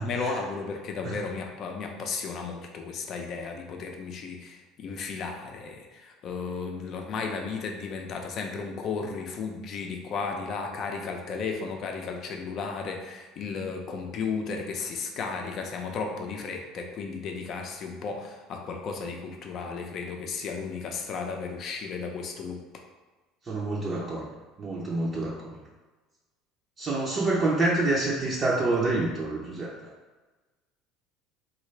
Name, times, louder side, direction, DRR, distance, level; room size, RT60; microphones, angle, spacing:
voice 1, 0.0-22.6, left 5 dB, 50° left, 2 dB, 0.6 m, -34 dB
voice 2, 23.5-24.3 24.6-25.6 26.8-29.9, right 2 dB, 30° right, -4 dB, 0.5 m, -27 dB
3.7 x 2.4 x 3.2 m, 1.3 s
supercardioid pair, 110°, 0 cm